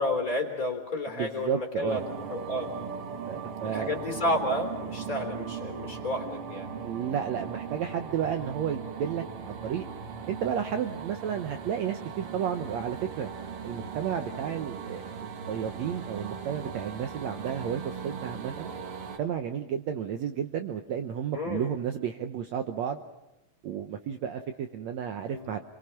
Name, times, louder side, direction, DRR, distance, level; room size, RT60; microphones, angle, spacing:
voice 1, 0.0-2.0 2.3-2.7 3.6-6.7 21.3-21.7 25.3-25.5, left 1 dB, 25° left, 4 dB, 3.6 m, -31 dB
voice 2, 1.1-2.0 3.3-3.9 6.8-9.9 10.3-13.3 13.6-18.7 19.2-23.0 23.6-25.6, right 8 dB, 65° right, 7 dB, 1.9 m, -32 dB
sound 1, 1.9-19.2, right 6 dB, 50° right, 1.9 m, -38 dB
29.5 x 23.5 x 5.8 m, 0.98 s
omnidirectional pair, 4.0 m